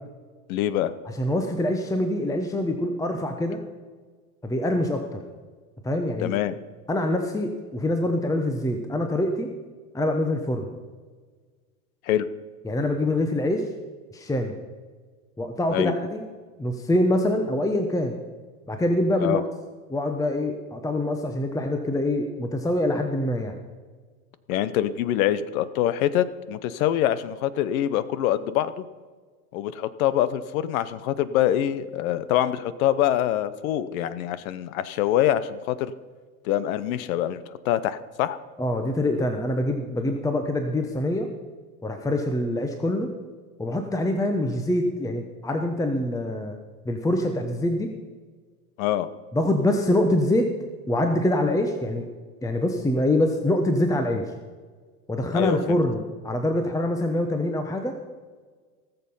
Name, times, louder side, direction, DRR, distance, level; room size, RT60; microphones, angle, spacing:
voice 1, 0.5-0.9 6.2-6.5 12.1-12.3 15.7-15.9 19.2-19.4 24.5-28.8 29.5-35.9 36.4-38.4 48.8-49.1 55.3-55.8, left 12 dB, 65° left, 15 dB, 0.9 m, -25 dB
voice 2, 1.2-3.6 4.4-5.2 5.8-6.4 6.9-9.5 9.9-10.7 12.6-13.7 14.1-14.5 15.4-16.2 16.6-18.2 18.7-19.5 19.9-23.6 38.6-41.3 41.8-43.1 43.6-46.6 46.8-47.9 49.3-50.5 50.9-52.1 52.4-54.3 55.1-57.9, left 1 dB, 5° left, 5 dB, 1.0 m, -25 dB
18.5 x 6.9 x 5.5 m, 1.5 s
hypercardioid pair, 105°, 45 cm